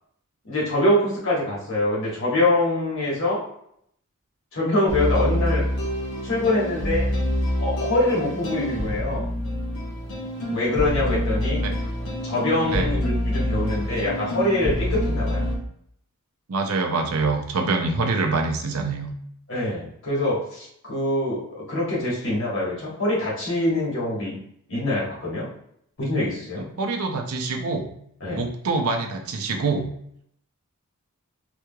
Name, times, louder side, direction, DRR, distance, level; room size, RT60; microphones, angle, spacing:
voice 1, 0.4-3.4 4.5-5.6 6.2-7.1 7.6-9.3 10.5-11.6 12.2-15.5 19.5-24.3 24.7-25.5 26.0-26.6 28.2-28.4, left 1 dB, 60° left, -5 dB, 1.5 m, -24 dB
sound 1, 4.9-15.6, equal, 85° left, 1.0 m, -26 dB
voice 2, 16.5-19.1 26.6-27.9 28.3-29.9, right 3 dB, 75° right, 4 dB, 0.6 m, -25 dB
3.4 x 3.1 x 2.3 m, 0.70 s
head